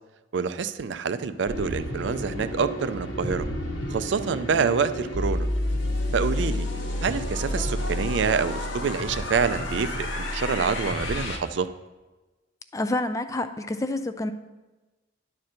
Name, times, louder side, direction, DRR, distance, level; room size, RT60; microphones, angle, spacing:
voice 1, 0.3-3.5 3.9-5.5 6.1-6.7 7.0-11.7, right 5 dB, 65° right, 12 dB, 0.4 m, -27 dB
sound 1, 1.4-11.4, left 1 dB, 75° left, 1.1 m, -30 dB
voice 2, 12.7-14.3, left 2 dB, 15° left, 10 dB, 0.3 m, -28 dB
10.5 x 4.3 x 6.3 m, 1.2 s
head